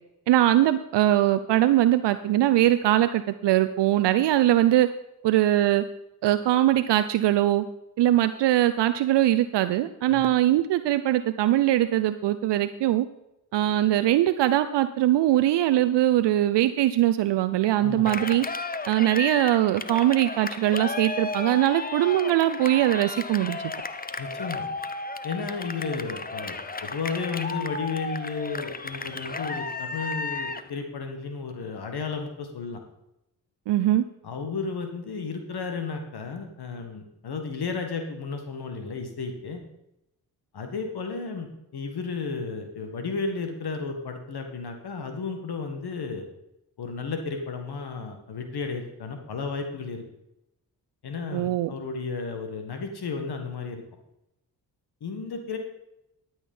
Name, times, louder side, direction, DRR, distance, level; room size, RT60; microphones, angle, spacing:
voice 1, 0.3-4.9 5.2-5.8 6.2-7.6 8.0-13.1 13.5-18.5 18.9-23.6 33.7-34.0 51.3-51.7, right 13 dB, 65° right, 11 dB, 0.6 m, -21 dB
voice 2, 17.8-18.2 24.2-24.7 25.2-32.8 34.2-39.6 40.5-46.3 46.8-50.0 51.0-53.8 55.0-55.6, left 4 dB, 60° left, 5 dB, 1.7 m, -33 dB
Cheering, 18.1-30.7, left 4 dB, 20° left, 0.8 m, -34 dB
12.5 x 6.4 x 5.4 m, 0.86 s
supercardioid pair, 50°, 44 cm